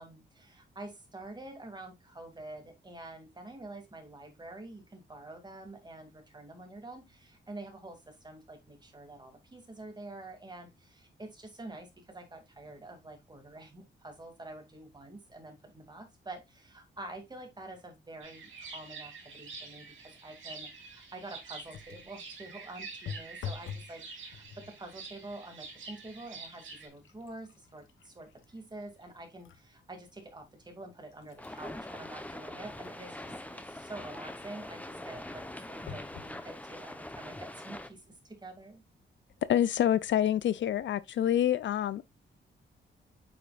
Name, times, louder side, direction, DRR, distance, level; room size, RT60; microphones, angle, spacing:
voice 1, 0.0-38.8, right 2 dB, 20° right, 2.5 m, -47 dB
sound 1, 18.2-26.9, right 4 dB, 85° right, 3.1 m, -47 dB
sound 2, 21.7-22.2 23.1-24.0 24.3-24.8 25.5-25.7 26.1-29.7 30.1-30.2 30.9-33.6 35.9-36.4 37.1-37.2 37.4-37.5, left 7 dB, 90° left, 0.9 m, -47 dB
sound 3, 31.4-37.9, left 1 dB, 5° left, 0.9 m, -43 dB
voice 2, 39.5-42.0, left 11 dB, 70° left, 0.5 m, -27 dB
8.6 x 5.2 x 2.4 m
cardioid pair, 100°, 20 cm